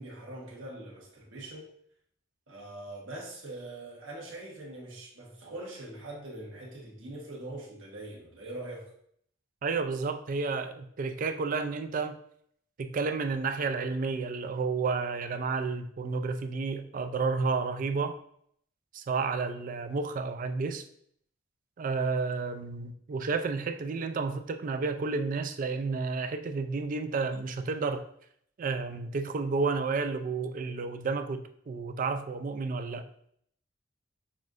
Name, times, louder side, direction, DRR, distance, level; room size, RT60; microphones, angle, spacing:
voice 1, 0.0-1.7 2.5-8.9, right 1 dB, 85° right, -3 dB, 1.3 m, -42 dB
voice 2, 9.6-12.2 12.8-18.2 18.9-20.8 21.8-28.0 28.6-33.1, right 4 dB, 45° right, 9 dB, 0.3 m, -31 dB
6.0 x 2.5 x 2.5 m, 0.66 s
head